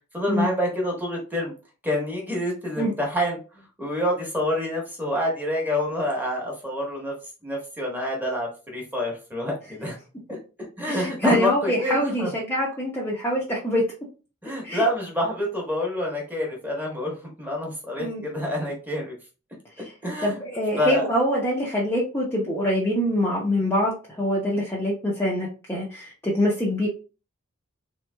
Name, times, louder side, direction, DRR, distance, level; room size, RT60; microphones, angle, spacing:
voice 1, 0.1-1.5 1.8-7.1 7.4-10.0 10.3-10.4 10.8-12.3 14.4-19.1 20.0-20.4 20.8-21.0, left 1 dB, 10° right, -1 dB, 1.1 m, -27 dB
voice 2, 10.9-13.8 14.6-14.8 18.0-18.2 20.2-26.9, equal, 10° left, -5 dB, 0.7 m, -24 dB
3.4 x 3.1 x 2.2 m, 0.33 s
head